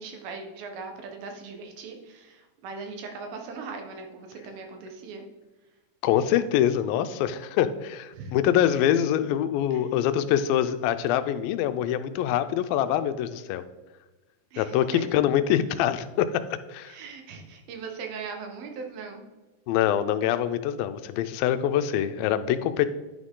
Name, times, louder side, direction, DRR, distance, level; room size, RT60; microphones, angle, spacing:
voice 1, 0.0-5.2 8.1-8.4 9.7-9.8 14.5-15.0 16.8-19.2, right 4 dB, 80° right, 3 dB, 3.0 m, -39 dB
voice 2, 6.0-13.6 14.6-17.0 19.7-22.9, left 10 dB, 85° left, 11 dB, 2.3 m, -24 dB
10.5 x 6.2 x 3.7 m, 1.2 s
omnidirectional pair, 4.1 m